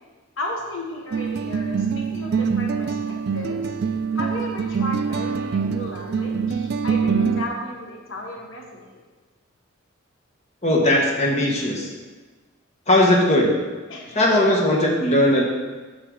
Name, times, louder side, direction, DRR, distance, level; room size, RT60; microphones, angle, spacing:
voice 1, 0.4-3.7 4.1-9.1 13.9-14.2, left 1 dB, 65° left, 0 dB, 1.1 m, -34 dB
sound 1, 1.1-7.5, right 5 dB, 50° right, 0.3 m, -24 dB
voice 2, 10.6-11.9 12.9-13.5 14.1-15.4, left 1 dB, 35° left, -2 dB, 1.2 m, -18 dB
8.0 x 6.6 x 3.8 m, 1.3 s
head